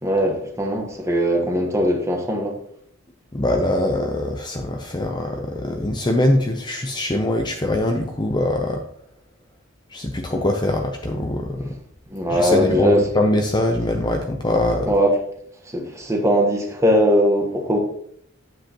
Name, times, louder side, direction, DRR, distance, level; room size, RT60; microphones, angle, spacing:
voice 1, 0.0-2.5 10.3-10.4 11.6-11.8 12.1-13.1 14.9-15.1 15.6-17.8, equal, 15° right, 1.2 m, -20 dB
voice 2, 3.3-8.8 9.9-11.6 12.3-14.9, left 1 dB, 20° left, 0.5 m, -22 dB
8.9 x 7.5 x 3.0 m
head